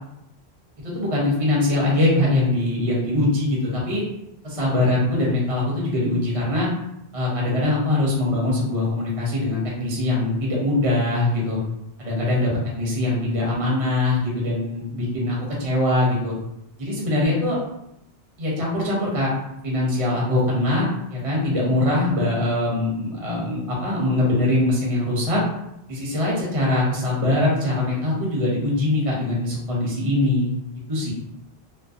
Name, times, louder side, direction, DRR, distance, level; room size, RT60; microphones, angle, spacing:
voice 1, 0.8-4.0 4.4-6.7 7.1-11.6 12.0-12.5 12.8-16.3 16.8-17.6 18.4-19.3 19.6-25.4 25.9-30.5 30.9-31.1, left 2 dB, 40° right, -4 dB, 0.6 m, -22 dB
2.5 x 2.0 x 2.4 m, 0.83 s
omnidirectional pair, 1.1 m